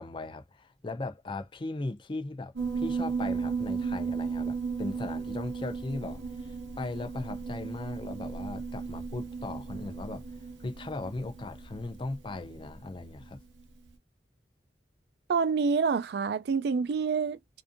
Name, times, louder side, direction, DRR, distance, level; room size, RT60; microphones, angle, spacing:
voice 1, 0.0-10.2 10.6-13.4, left 2 dB, 25° left, 0.4 m, -38 dB
Piano, 2.6-13.3, right 5 dB, 85° right, 0.8 m, -35 dB
voice 2, 15.3-17.4, right 5 dB, 60° right, 0.3 m, -27 dB
2.6 x 2.5 x 2.5 m
head